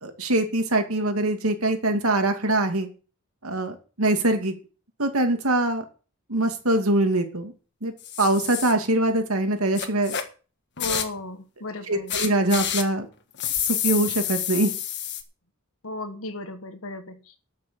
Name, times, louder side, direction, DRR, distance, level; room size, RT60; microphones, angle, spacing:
voice 1, 0.0-2.9 3.4-4.5 5.0-5.8 6.3-7.5 7.8-7.9 8.2-10.1 10.9-11.0 11.9-13.1 13.6-14.7, right 1 dB, 75° right, 2.4 m, -23 dB
sound 1, 8.0-8.7 9.8-10.2 10.8-11.2 12.1-12.8 13.4-15.2, left 10 dB, 50° left, 1.6 m, -28 dB
voice 2, 10.8-12.2 15.8-17.4, left 2 dB, 65° left, 1.5 m, -35 dB
12.5 x 6.3 x 7.6 m
head